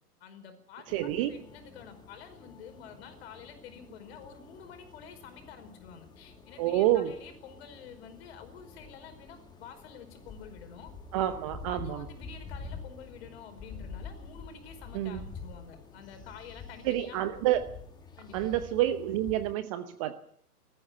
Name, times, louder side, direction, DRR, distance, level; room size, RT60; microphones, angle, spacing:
voice 1, 0.2-10.9 11.7-17.2 18.2-18.5, left 7 dB, 40° left, 8 dB, 4.9 m, -49 dB
sound 1, 0.9-19.5, left 4 dB, 10° left, 1.9 m, -47 dB
voice 2, 0.9-1.3 6.6-7.1 11.1-12.1 14.9-15.2 16.8-17.6 18.3-20.2, right 13 dB, 20° right, 11 dB, 0.8 m, -28 dB
20.0 x 14.5 x 9.3 m, 0.66 s
figure-of-eight pair, 130°, 47 cm